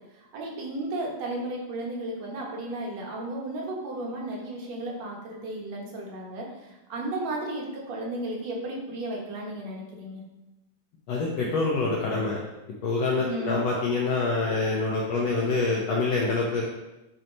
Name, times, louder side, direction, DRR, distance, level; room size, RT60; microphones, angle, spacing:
voice 1, 0.1-10.2 13.3-13.6, right 1 dB, 55° right, -2 dB, 2.1 m, -34 dB
voice 2, 11.1-12.4 12.8-16.7, left 3 dB, 90° left, -3 dB, 1.4 m, -26 dB
10.0 x 4.5 x 4.0 m, 0.99 s
omnidirectional pair, 4.3 m